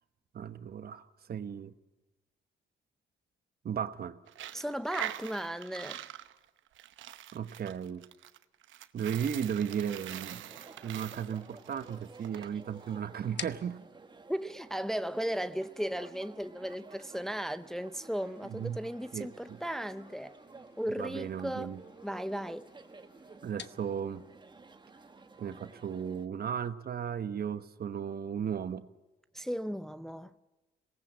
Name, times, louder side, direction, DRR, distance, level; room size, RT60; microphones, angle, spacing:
voice 1, 0.3-1.7 3.6-4.2 7.3-8.1 8.9-10.5 10.8-13.9 18.4-18.8 19.1-19.6 21.0-21.8 23.4-24.2 25.4-28.8, right 8 dB, 50° right, 1.1 m, -35 dB
Coin (dropping), 4.3-12.5, right 12 dB, 75° right, 0.9 m, -44 dB
voice 2, 4.5-6.0 14.3-20.4 20.8-21.7 22.0-22.7 29.3-30.3, equal, ahead, 0.7 m, -36 dB
sound 1, 9.6-26.3, right 3 dB, 25° right, 1.3 m, -54 dB
sound 2, 11.8-26.2, left 9 dB, 60° left, 1.0 m, -54 dB
26.0 x 18.5 x 7.5 m
cardioid pair, 90°, 20 cm